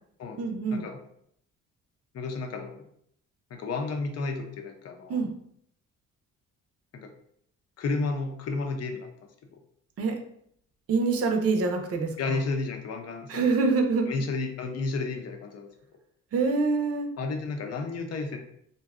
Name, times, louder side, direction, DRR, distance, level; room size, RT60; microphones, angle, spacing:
voice 1, 0.4-0.8 5.1-5.3 10.0-10.2 10.9-12.1 13.3-14.1 16.3-17.1, right 4 dB, 50° right, 4 dB, 0.6 m, -25 dB
voice 2, 2.1-2.8 3.5-5.2 6.9-7.1 7.8-9.1 9.5-9.6 12.2-13.5 14.1-15.7 17.2-18.4, left 3 dB, 55° left, 4 dB, 0.6 m, -32 dB
2.7 x 2.2 x 3.5 m, 0.69 s
cardioid pair, 90°, 30 cm